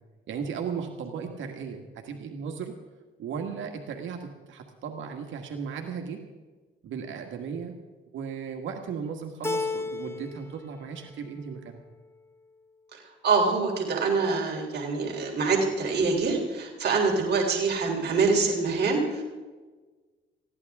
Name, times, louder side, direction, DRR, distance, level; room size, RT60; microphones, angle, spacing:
voice 1, 0.3-2.7 3.2-6.2 6.8-7.8 8.1-11.8, right 6 dB, 75° right, 4 dB, 1.7 m, -36 dB
Keyboard (musical), 9.4-10.5 10.9-11.6, left 3 dB, 10° left, 0.9 m, -33 dB
voice 2, 12.9-19.2, right 4 dB, 55° right, 0 dB, 3.7 m, -25 dB
21.0 x 15.5 x 3.6 m, 1.3 s
cardioid pair, 90°, 20 cm